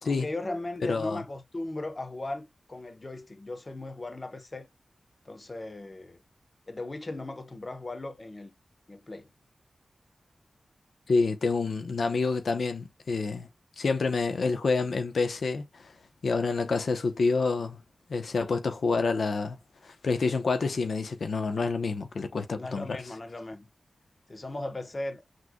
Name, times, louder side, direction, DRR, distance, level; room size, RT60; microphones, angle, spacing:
voice 1, 0.0-4.7 5.3-6.2 6.7-8.5 8.9-9.3 22.6-23.7 24.3-25.2, left 2 dB, 30° left, 0.8 m, -37 dB
voice 2, 0.8-1.2 11.1-13.5 13.8-15.9 16.2-17.8 18.1-19.6 19.8-23.0, left 4 dB, 70° left, 0.7 m, -28 dB
6.2 x 3.1 x 2.2 m
wide cardioid pair, 120°, 0 cm